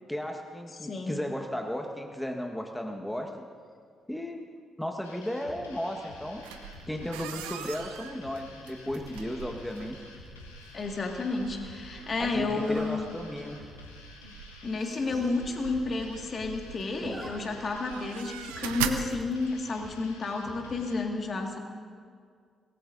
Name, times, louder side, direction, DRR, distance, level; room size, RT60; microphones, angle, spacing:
voice 1, 0.1-3.5 4.1-4.4 4.8-6.6 6.9-10.0 12.2-13.6, left 1 dB, 5° left, 3 dB, 1.5 m, -35 dB
voice 2, 0.8-1.2 10.7-13.1 14.6-21.6, left 3 dB, 40° left, 2 dB, 2.0 m, -31 dB
sound 1, 5.0-21.0, left 3 dB, 80° left, 1.3 m, -50 dB
sound 2, 6.4-20.0, right 9 dB, 75° right, 0.6 m, -42 dB
Zipper (clothing), 10.6-11.0 12.5-12.9 13.5-13.6 14.0-14.1 14.3-14.4 14.7-15.3 15.6-15.7 15.9-16.5 16.8-17.3 17.6-17.7 19.1-19.4, right 2 dB, 40° right, 3.6 m, -45 dB
25.0 x 19.0 x 2.7 m, 2.1 s
figure-of-eight pair, 40°, 0 cm